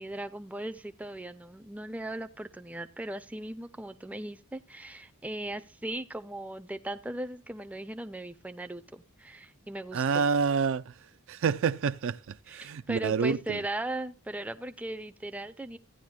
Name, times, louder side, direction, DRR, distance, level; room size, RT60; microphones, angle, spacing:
voice 1, 0.0-10.3 12.5-15.8, right 1 dB, 5° right, 0.5 m, -38 dB
voice 2, 9.9-10.9 11.3-13.6, right 5 dB, 60° right, 0.4 m, -28 dB
15.0 x 10.0 x 2.3 m
head